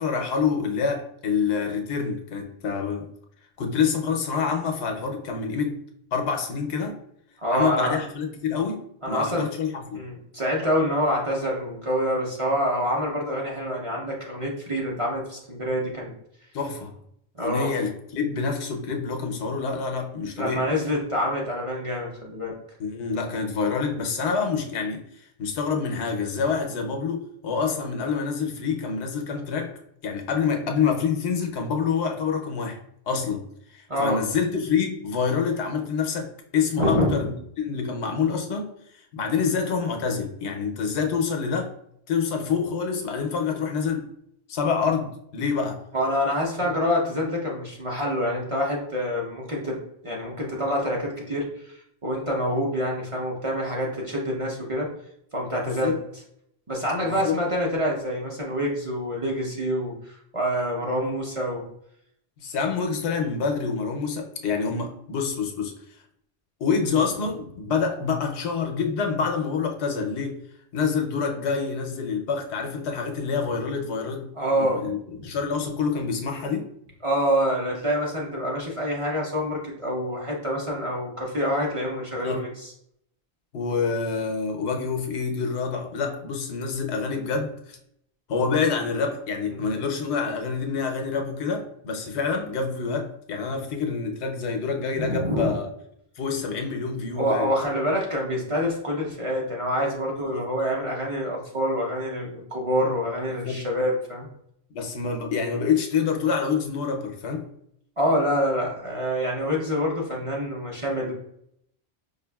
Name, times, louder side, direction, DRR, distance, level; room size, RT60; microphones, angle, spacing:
voice 1, 0.0-3.1 3.6-5.8 6.1-7.0 7.5-10.0 16.5-16.9 17.4-20.7 22.8-25.1 25.4-29.7 30.0-32.8 33.1-33.5 33.7-38.7 39.1-41.7 42.1-44.1 44.5-45.8 46.6-46.7 55.6-56.0 57.0-57.4 62.4-65.7 66.6-70.4 70.7-74.3 74.6-76.7 82.2-82.4 83.5-87.8 88.3-95.7 96.2-97.5 100.3-100.5 103.4-103.6 104.7-107.5, left 5 dB, 80° left, 3 dB, 0.9 m, -27 dB
voice 2, 7.4-8.0 9.0-9.5 9.9-16.1 17.4-17.7 20.4-22.5 33.9-34.2 36.8-37.2 45.9-49.8 50.0-51.7 52.0-54.9 55.3-55.9 56.7-61.7 74.4-74.8 75.2-75.3 77.0-82.7 89.5-89.7 95.0-95.5 97.2-104.3 108.0-111.1, equal, 35° right, -3 dB, 0.6 m, -26 dB
5.0 x 2.5 x 2.2 m, 0.72 s
omnidirectional pair, 1.1 m